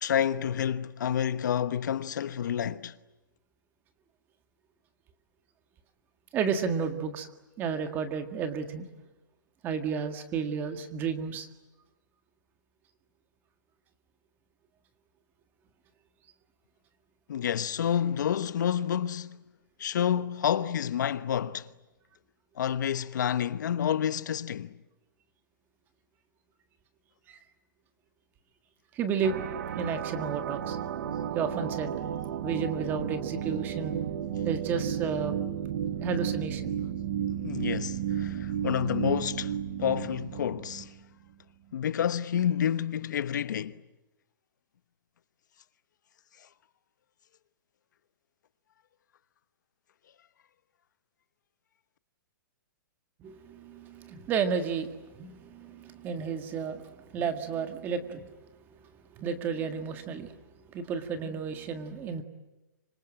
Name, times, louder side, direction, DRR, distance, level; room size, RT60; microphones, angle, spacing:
voice 1, 0.0-2.9 17.3-19.4 19.8-21.7 22.6-24.8 37.4-40.9 41.7-43.8, left 9 dB, 60° left, 1.1 m, -29 dB
voice 2, 6.3-7.3 7.6-8.9 9.6-11.5 27.3-27.4 28.9-29.4 29.8-30.8 31.3-32.0 32.4-34.0 34.4-35.4 36.0-36.7 53.2-58.4 59.2-60.3 60.7-62.2, right 6 dB, 15° right, 1.8 m, -32 dB
sound 1, 29.2-41.0, right 9 dB, 55° right, 1.7 m, -33 dB
26.0 x 26.0 x 8.9 m
hypercardioid pair, 165°, 11 cm